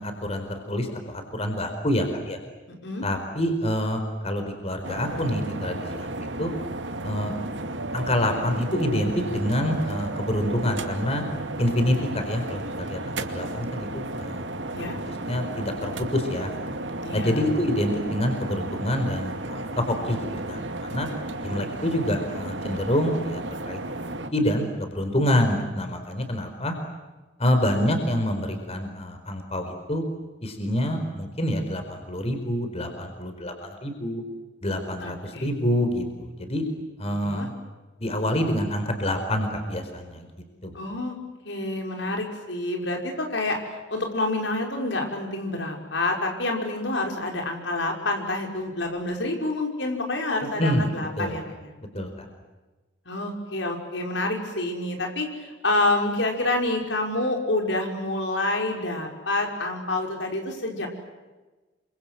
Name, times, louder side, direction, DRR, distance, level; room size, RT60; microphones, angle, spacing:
voice 1, 0.0-2.4 3.0-6.5 7.0-7.3 7.9-11.2 11.6-14.5 14.8-16.5 17.1-21.1 21.4-23.8 24.3-26.8 27.4-30.0 30.4-34.2 34.6-36.6 37.0-37.5 38.0-40.3 40.6-40.8 50.4-50.8 51.2-51.4 51.9-52.2, left 1 dB, 35° left, 6 dB, 4.6 m, -27 dB
voice 2, 2.7-3.0 14.7-15.0 17.0-17.4 35.0-35.5 37.2-37.5 40.7-41.1 41.4-43.6 43.9-51.7 53.1-60.9, left 2 dB, 85° left, 2 dB, 5.7 m, -28 dB
sound 1, 4.8-24.3, right 2 dB, 85° right, 2.3 m, -33 dB
28.5 x 26.0 x 7.8 m, 1.2 s
head